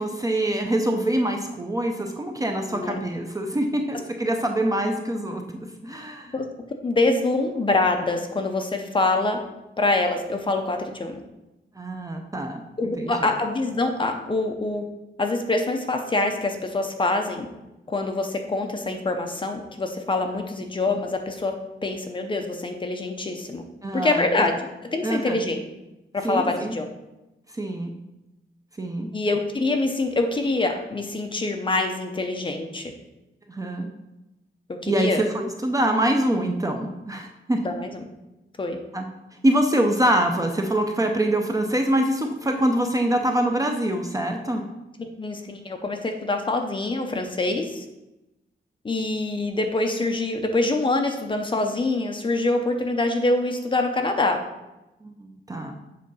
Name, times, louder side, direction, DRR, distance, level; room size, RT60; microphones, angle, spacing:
voice 1, 0.0-6.3 11.8-13.3 23.8-24.4 25.0-25.4 26.2-26.7 27.6-27.9 28.8-29.1 33.5-33.9 34.9-37.6 38.9-39.1 39.4-44.6 55.0-55.7, right 1 dB, 15° right, 3 dB, 0.5 m, -25 dB
voice 2, 2.7-3.0 6.3-6.5 6.8-9.4 9.8-11.2 12.8-14.8 15.2-17.5 17.9-21.5 21.8-23.6 23.9-24.5 24.8-25.6 26.1-26.8 29.1-32.9 34.8-35.2 37.6-38.1 38.6-38.8 45.0-47.8 48.8-54.4, left 2 dB, 25° left, 4 dB, 0.6 m, -25 dB
7.6 x 3.7 x 5.5 m, 0.97 s
wide cardioid pair, 180°, 20 cm